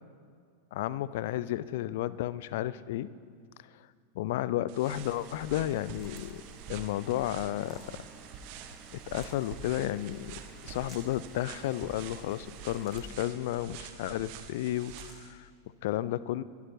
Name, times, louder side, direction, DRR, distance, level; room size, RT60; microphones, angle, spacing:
voice 1, 0.7-3.1 4.2-6.4 6.7-8.0 9.1-10.4 10.6-15.5 15.8-16.4, left 13 dB, 50° left, 18 dB, 0.4 m, -32 dB
sound 1, 4.7-15.3, right 6 dB, 45° right, 0.9 m, -47 dB
Vehicle / Engine, 4.8-12.8, right 4 dB, 20° right, 1.3 m, -54 dB
sound 2, 5.7-6.5 7.6-8.0 8.9-9.5 10.7-11.1 12.4-13.2 14.8-15.2, left 3 dB, 25° left, 2.3 m, -56 dB
23.5 x 10.5 x 3.1 m, 2.1 s
figure-of-eight pair, 90°, 0 cm